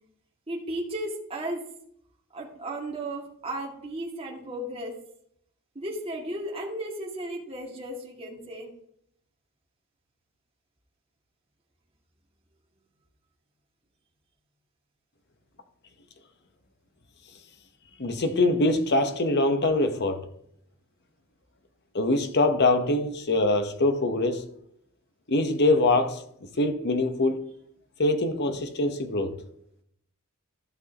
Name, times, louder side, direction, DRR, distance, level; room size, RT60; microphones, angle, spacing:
voice 1, 0.5-1.6 2.3-4.9 5.7-8.7, right 1 dB, 25° right, 2.2 m, -34 dB
voice 2, 18.0-20.3 21.9-24.5 25.3-26.2 26.6-27.4 28.0-29.4, left 2 dB, 50° left, 1.1 m, -23 dB
14.5 x 6.2 x 3.0 m
head